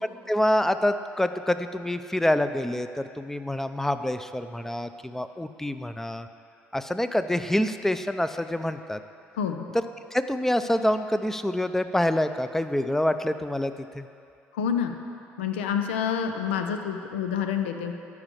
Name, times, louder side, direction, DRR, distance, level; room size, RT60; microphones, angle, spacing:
voice 1, 0.3-6.3 6.7-9.0 9.7-9.8 10.1-14.1, left 1 dB, 5° left, 10 dB, 0.5 m, -26 dB
voice 2, 9.3-9.7 14.5-15.0 15.4-17.9, left 7 dB, 85° left, 6 dB, 0.5 m, -28 dB
11.0 x 4.8 x 7.3 m, 2.5 s
hypercardioid pair, 55°, 6 cm